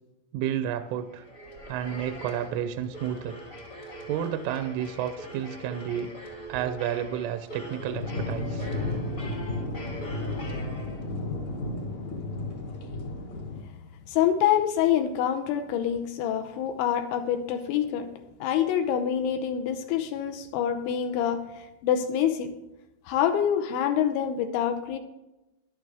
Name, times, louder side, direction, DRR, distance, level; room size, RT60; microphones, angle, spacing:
voice 1, 0.3-1.3 1.7-3.4 4.1-6.1 6.5-8.7, right 10 dB, 80° right, 9 dB, 2.9 m, -31 dB
sound 1, 0.9-11.3, right 1 dB, 35° left, 1.1 m, -42 dB
sound 2, 7.8-13.6, left 2 dB, 60° left, 2.0 m, -33 dB
voice 2, 14.1-18.1 18.4-22.5 23.1-25.0, left 9 dB, 80° left, 8 dB, 2.8 m, -26 dB
14.0 x 11.5 x 3.4 m, 0.94 s
omnidirectional pair, 6.0 m